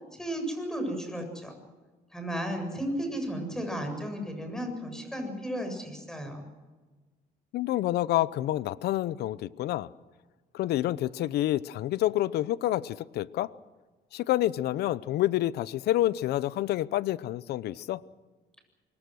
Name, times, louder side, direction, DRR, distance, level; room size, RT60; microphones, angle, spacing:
voice 1, 0.1-1.5 2.1-6.5, equal, 5° left, 7.6 m, -34 dB
voice 2, 7.5-9.9 10.5-13.5 14.1-18.0, left 14 dB, 75° left, 0.8 m, -28 dB
25.5 x 23.0 x 6.4 m
cardioid pair, 110°, 17 cm